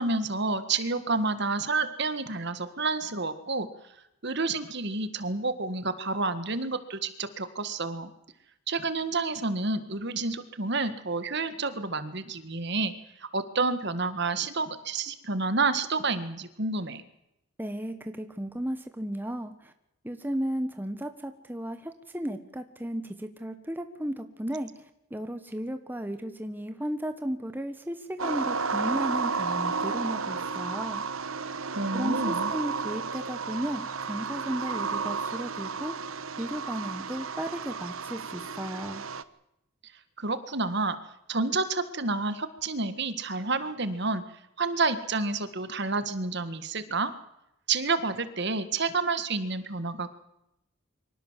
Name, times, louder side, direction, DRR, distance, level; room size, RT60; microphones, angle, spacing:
voice 1, 0.0-3.7 4.2-8.1 8.7-12.9 13.2-17.0 31.7-32.5 40.2-41.0 41.3-44.2 44.6-47.1 47.7-50.1, right 3 dB, 50° right, 11 dB, 1.7 m, -29 dB
voice 2, 17.6-19.5 20.0-24.7 25.1-31.0 31.9-35.9 36.4-39.0, equal, 10° right, 8 dB, 1.3 m, -34 dB
sound 1, 28.2-39.2, right 5 dB, 70° right, 1.1 m, -32 dB
24.5 x 17.5 x 7.5 m, 0.83 s
head